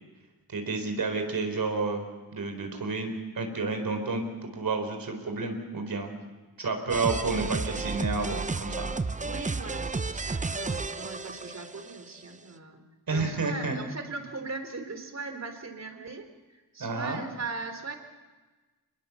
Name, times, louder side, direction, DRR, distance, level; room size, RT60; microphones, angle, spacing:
voice 1, 0.5-2.0 2.3-6.1 6.6-8.9 13.1-13.8 16.8-17.2, right 3 dB, 70° right, 5 dB, 4.3 m, -30 dB
sound 1, 6.9-12.0, right 3 dB, 20° right, 0.8 m, -32 dB
voice 2, 9.2-18.0, right 3 dB, 45° right, 7 dB, 3.7 m, -39 dB
25.5 x 21.0 x 7.2 m, 1.3 s
cardioid pair, 80°, 36 cm